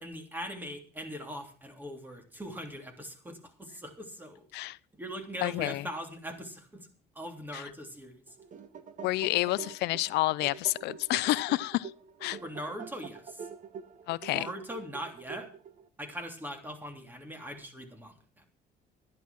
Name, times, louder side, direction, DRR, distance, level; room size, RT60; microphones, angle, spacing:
voice 1, 0.0-4.4 4.9-6.9 7.1-8.3 12.4-13.5 14.3-15.5 16.0-18.5, equal, 10° right, 3.1 m, -41 dB
voice 2, 5.4-5.9 7.5-7.6 9.0-11.9 12.2-12.4 14.1-14.5, left 18 dB, 85° left, 0.6 m, -29 dB
sound 1, 8.3-15.9, right 6 dB, 50° right, 1.5 m, -46 dB
11.5 x 10.5 x 6.0 m
cardioid pair, 110°, 17 cm